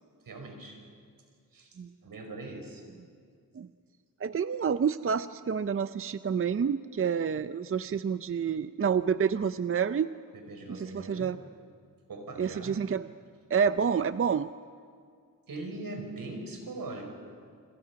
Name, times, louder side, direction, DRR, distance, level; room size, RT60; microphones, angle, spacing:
voice 1, 0.3-0.8 1.5-1.8 2.0-2.8 10.3-11.3 12.1-12.8 15.5-17.1, right 2 dB, 80° right, 3 dB, 5.0 m, -41 dB
voice 2, 4.2-10.1 10.8-11.4 12.4-13.1 13.5-14.5, right 7 dB, 40° right, 12 dB, 0.5 m, -28 dB
28.0 x 27.5 x 5.9 m, 2.2 s
wide cardioid pair, 110°, 34 cm